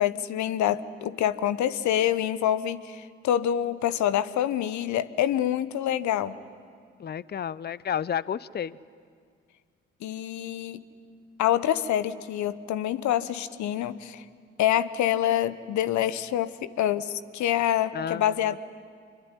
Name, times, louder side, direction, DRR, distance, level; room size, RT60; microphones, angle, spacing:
voice 1, 0.0-6.4 10.0-10.8 11.4-14.2 14.6-18.6, left 11 dB, 65° left, 14 dB, 1.1 m, -26 dB
voice 2, 7.0-8.8 17.9-18.6, left 8 dB, 30° left, 20 dB, 0.7 m, -31 dB
26.0 x 23.5 x 9.9 m, 2.1 s
hypercardioid pair, 50°, 31 cm